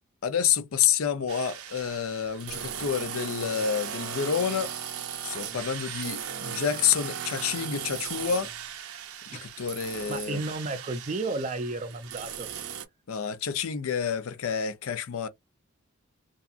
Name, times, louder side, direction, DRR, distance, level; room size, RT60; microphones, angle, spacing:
voice 1, 0.2-4.7 5.2-8.5 9.3-10.4 13.1-15.3, left 7 dB, 75° left, 0.5 m, -28 dB
sound 1, 1.3-12.9, right 8 dB, 80° right, 0.6 m, -37 dB
voice 2, 10.1-12.5, right 2 dB, 35° right, 0.4 m, -33 dB
2.7 x 2.3 x 2.4 m
head